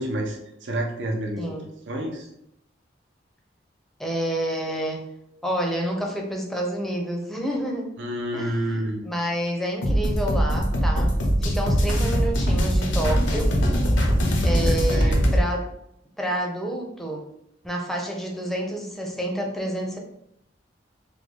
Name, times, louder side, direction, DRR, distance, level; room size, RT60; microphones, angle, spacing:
voice 1, 0.0-1.5 1.9-2.3 8.0-9.1 14.9-15.4, right 1 dB, 70° right, 0 dB, 0.6 m, -29 dB
voice 2, 1.4-1.7 4.0-5.0 5.4-7.9 8.3-8.7 9.0-11.1 11.4-13.5 14.4-15.7 16.2-17.2 17.6-20.0, right 1 dB, ahead, 0 dB, 0.5 m, -28 dB
sound 1, 9.8-15.4, equal, 80° left, 0.7 m, -21 dB
3.5 x 2.2 x 3.3 m, 0.79 s
head